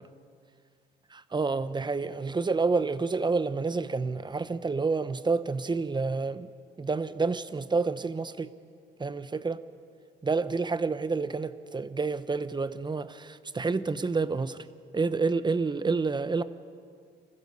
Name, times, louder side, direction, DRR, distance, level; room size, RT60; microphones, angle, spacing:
voice 1, 1.1-6.5 6.8-8.5 9.0-9.6 10.2-14.6 14.9-16.4, right 4 dB, 20° right, 13 dB, 0.9 m, -29 dB
26.5 x 15.5 x 6.9 m, 2.3 s
cardioid pair, 90°, 20 cm